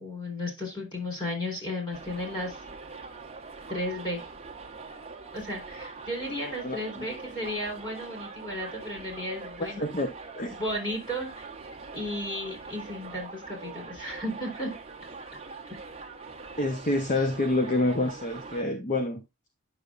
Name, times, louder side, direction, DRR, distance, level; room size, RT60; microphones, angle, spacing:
voice 1, 0.0-2.6 3.7-4.2 5.3-9.9 10.6-11.5 11.9-14.7, left 1 dB, 20° left, 4.0 m, -34 dB
Subway metro underground, 1.9-18.6, right 4 dB, 30° right, 1.1 m, -43 dB
voice 2, 6.6-7.0 9.6-10.1 10.4-10.5 16.6-19.2, left 2 dB, 35° left, 0.9 m, -27 dB
9.6 x 6.8 x 2.5 m
head